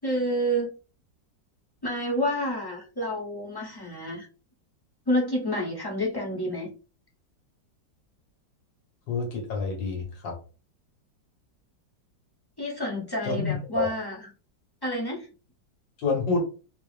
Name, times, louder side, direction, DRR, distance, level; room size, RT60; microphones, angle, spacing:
voice 1, 0.0-0.7 1.8-4.3 5.1-6.7 12.6-14.3 14.8-15.3, equal, 25° left, -4 dB, 0.4 m, -29 dB
voice 2, 9.1-10.3 13.2-13.9 16.0-16.4, left 4 dB, 80° left, 1 dB, 2.0 m, -28 dB
4.5 x 2.1 x 3.2 m, 0.34 s
omnidirectional pair, 2.0 m